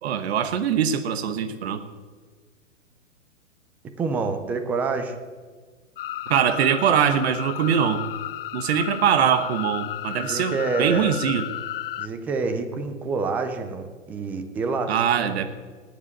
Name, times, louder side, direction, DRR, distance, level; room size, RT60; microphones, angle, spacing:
voice 1, 0.0-1.8 6.3-8.0 8.5-11.5 14.9-15.4, right 8 dB, 55° right, 9 dB, 1.4 m, -22 dB
voice 2, 4.0-5.2 10.2-11.1 12.0-15.4, right 4 dB, 5° right, 8 dB, 0.3 m, -27 dB
sound 1, 6.0-12.1, left 13 dB, 50° left, 0.6 m, -33 dB
18.0 x 7.6 x 8.0 m, 1.5 s
hypercardioid pair, 125°, 37 cm